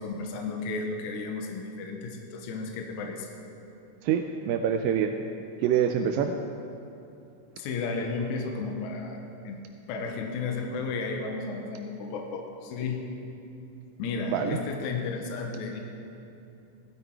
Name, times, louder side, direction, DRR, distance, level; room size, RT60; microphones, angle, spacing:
voice 1, 0.0-3.3 7.6-9.2 9.4-9.6 9.9-13.0 14.0-15.8, left 4 dB, 70° left, 2 dB, 2.3 m, -33 dB
voice 2, 4.0-5.2 5.6-6.3 14.3-14.6, right 8 dB, 90° right, 5 dB, 2.3 m, -25 dB
16.5 x 11.5 x 4.6 m, 2.8 s
omnidirectional pair, 3.9 m